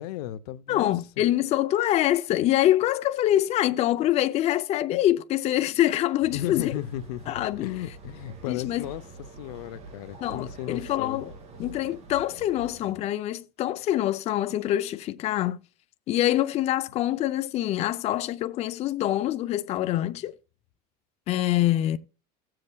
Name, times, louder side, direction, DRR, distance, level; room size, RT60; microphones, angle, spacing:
voice 1, 0.0-0.9 6.3-9.0 9.4-11.2, left 13 dB, 80° left, 0.7 m, -35 dB
voice 2, 0.7-6.7 7.3-7.7 8.5-8.9 10.2-11.3 11.6-15.6 16.1-20.4 21.3-22.0, left 13 dB, 35° left, 0.5 m, -25 dB
sound 1, 6.2-12.9, right 3 dB, 35° right, 2.6 m, -45 dB
16.0 x 7.7 x 2.3 m
supercardioid pair, 140°, 19 cm